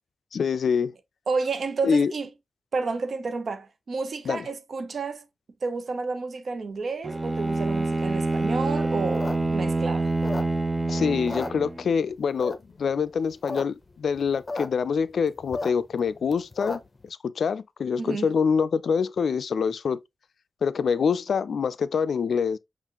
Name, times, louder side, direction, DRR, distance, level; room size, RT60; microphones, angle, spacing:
voice 1, 0.3-0.9 1.8-2.1 4.3-4.4 10.9-20.0 20.6-22.6, left 6 dB, 80° left, 0.3 m, -25 dB
voice 2, 1.3-2.3 2.7-5.2 5.6-10.1 18.0-18.3, right 4 dB, 70° right, 0.8 m, -30 dB
Bowed string instrument, 7.0-11.9, right 2 dB, 20° right, 0.6 m, -26 dB
sound 1, 9.0-10.8 11.1-12.0 12.4-12.8 13.2-13.6 13.9-14.0 14.1-14.7 15.0-17.0, left 2 dB, 35° left, 0.8 m, -34 dB
5.7 x 2.5 x 2.8 m
cardioid pair, 60°, 0 cm